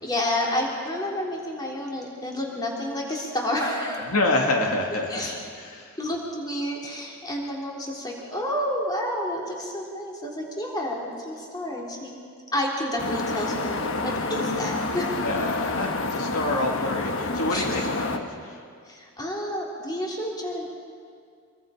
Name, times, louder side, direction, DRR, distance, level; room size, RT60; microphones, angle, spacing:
voice 1, 0.0-4.1 5.1-5.4 6.0-12.1 12.5-15.1 17.5-17.9 18.9-20.6, left 1 dB, 20° left, -2 dB, 3.4 m, -30 dB
voice 2, 4.1-5.3 5.6-5.8 15.2-18.5, left 2 dB, 75° left, 0 dB, 2.4 m, -27 dB
sound 1, 13.0-18.2, left 3 dB, 60° left, 1.3 m, -29 dB
25.5 x 23.5 x 5.1 m, 2.2 s
head